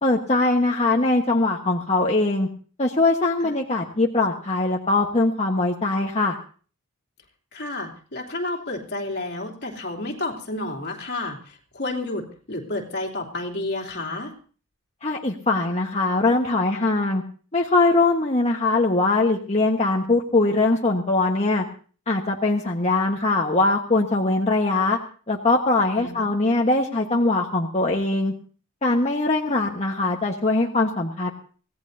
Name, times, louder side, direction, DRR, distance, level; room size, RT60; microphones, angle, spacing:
voice 1, 0.0-2.5 2.8-6.4 15.0-17.2 17.5-21.6 22.1-25.0 25.3-28.3 28.8-31.3, left 2 dB, 30° left, 0 dB, 1.4 m, -21 dB
voice 2, 7.5-14.3 26.0-26.3, left 2 dB, 55° left, 1 dB, 3.2 m, -31 dB
24.5 x 17.5 x 2.8 m, 0.42 s
head